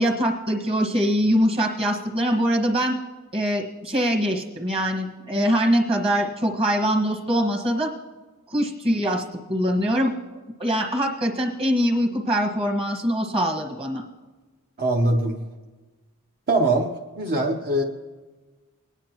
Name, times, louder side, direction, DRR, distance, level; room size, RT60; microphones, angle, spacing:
voice 1, 0.0-3.0 3.3-7.9 8.5-10.1 10.6-14.0, equal, 25° right, 0 dB, 1.4 m, -23 dB
voice 2, 14.8-15.4 16.5-17.8, right 2 dB, 45° right, 0 dB, 0.8 m, -22 dB
21.5 x 9.9 x 3.0 m, 1.3 s
head